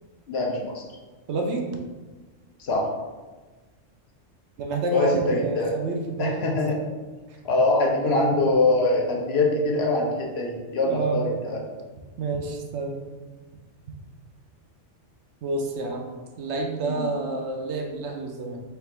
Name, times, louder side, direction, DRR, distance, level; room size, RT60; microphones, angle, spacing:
voice 1, 0.3-0.8 2.6-2.9 4.9-5.8 6.2-6.7 7.4-11.6 16.8-17.1, left 2 dB, 60° left, 0 dB, 0.8 m, -23 dB
voice 2, 1.3-1.7 4.6-6.6 10.9-11.3 12.2-13.0 15.4-16.1 16.4-18.6, right 2 dB, 70° right, 2 dB, 0.8 m, -29 dB
3.4 x 2.4 x 4.4 m, 1.3 s
omnidirectional pair, 1.3 m